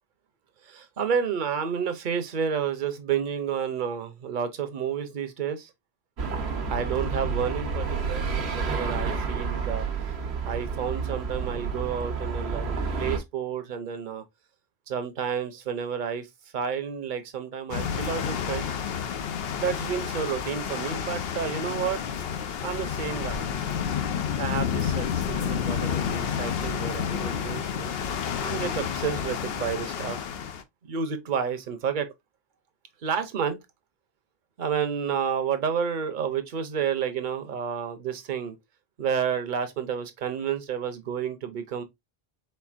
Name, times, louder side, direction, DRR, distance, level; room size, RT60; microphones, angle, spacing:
voice 1, 0.7-5.7 6.7-9.9 10.4-14.2 14.9-16.3 16.5-18.8 19.6-22.0 22.6-23.5 24.4-27.9 28.4-30.2 30.8-32.1 33.0-33.6 34.6-38.5 39.0-41.8, right 7 dB, 55° right, 0.8 m, -30 dB
sound 1, 6.2-13.2, right 5 dB, 85° right, 1.2 m, -30 dB
sound 2, 17.7-30.6, left 8 dB, 75° left, 0.8 m, -30 dB
4.4 x 3.8 x 2.4 m
omnidirectional pair, 1.0 m